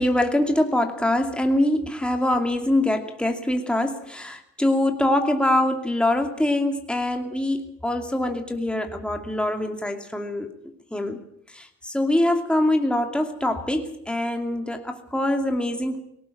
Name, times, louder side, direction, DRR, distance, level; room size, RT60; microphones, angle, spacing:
voice 1, 0.0-10.5 10.9-11.2 11.5-16.0, left 1 dB, 5° left, 4 dB, 2.5 m, -24 dB
18.5 x 18.5 x 8.5 m, 0.73 s
cardioid pair, 90°, 30 cm